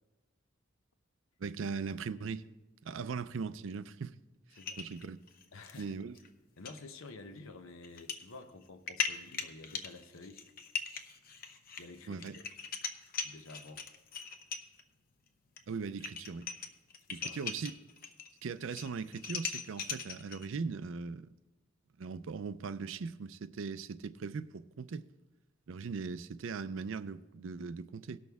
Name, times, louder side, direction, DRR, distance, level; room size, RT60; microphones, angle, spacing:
voice 1, 1.4-2.5 2.8-4.1 4.8-5.2 5.8-6.1 12.1-12.4 15.7-16.5 17.1-17.7 18.4-21.3 22.0-25.1 25.7-28.2, right 5 dB, 70° right, 0.4 m, -39 dB
sound 1, 4.6-5.8 6.2-6.3 6.7-6.8 7.8-8.2 8.6-14.8 15.6-15.7 15.9-18.3 18.6-20.5, left 6 dB, 45° left, 0.7 m, -40 dB
voice 2, 5.5-6.0 6.6-10.4 11.8-12.5 13.2-13.8 17.1-17.4, left 3 dB, 80° left, 0.9 m, -50 dB
18.5 x 6.3 x 3.5 m
head